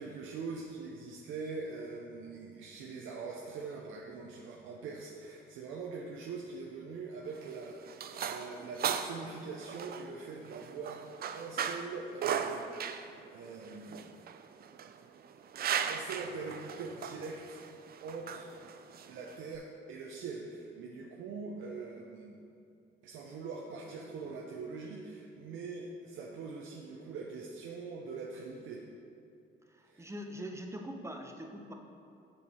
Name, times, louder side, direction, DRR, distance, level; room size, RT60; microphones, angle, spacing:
voice 1, 0.0-11.1 11.3-14.1 15.9-17.6 18.0-18.5 19.1-22.4 23.0-28.8 29.9-30.1, right 4 dB, 85° right, -2 dB, 0.7 m, -43 dB
sound 1, 7.3-19.6, right 8 dB, 50° right, 0.4 m, -38 dB
voice 2, 29.7-31.7, equal, 15° right, 3 dB, 0.9 m, -43 dB
7.4 x 6.5 x 4.1 m, 2.5 s
cardioid pair, 90°, 20 cm